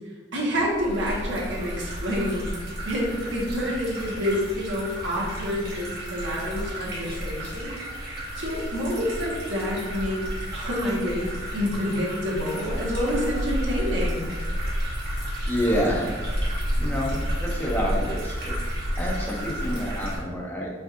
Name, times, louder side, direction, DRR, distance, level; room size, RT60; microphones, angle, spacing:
voice 1, 0.3-2.5 2.8-7.8 8.4-10.2 10.5-14.3, equal, 80° right, -4 dB, 1.2 m, -28 dB
sound 1, 0.7-20.2, equal, 55° right, 1.4 m, -31 dB
voice 2, 15.5-16.1 16.4-16.5 16.8-18.6 19.0-20.7, equal, 10° left, -3 dB, 0.7 m, -28 dB
4.7 x 4.1 x 2.5 m, 1.4 s
head